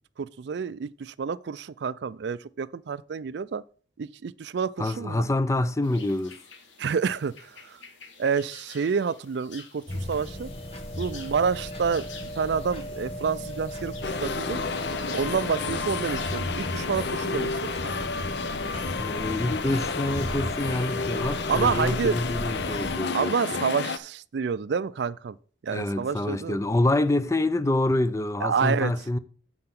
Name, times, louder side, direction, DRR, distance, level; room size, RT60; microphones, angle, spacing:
voice 1, 0.2-3.6 4.0-5.2 6.8-7.8 8.2-10.5 11.0-12.1 12.4-14.6 15.1-17.9 21.5-22.2 23.1-25.4 25.6-26.6 28.4-28.9, right 6 dB, 65° right, 0.4 m, -28 dB
voice 2, 4.8-6.4 19.0-23.6 25.7-29.2, left 2 dB, 15° left, 0.4 m, -26 dB
sound 1, 5.8-16.4, left 5 dB, 85° left, 1.7 m, -49 dB
sound 2, 9.9-23.0, equal, 30° left, 1.4 m, -36 dB
sound 3, 14.0-24.0, left 4 dB, 65° left, 0.7 m, -31 dB
7.6 x 5.7 x 5.8 m
head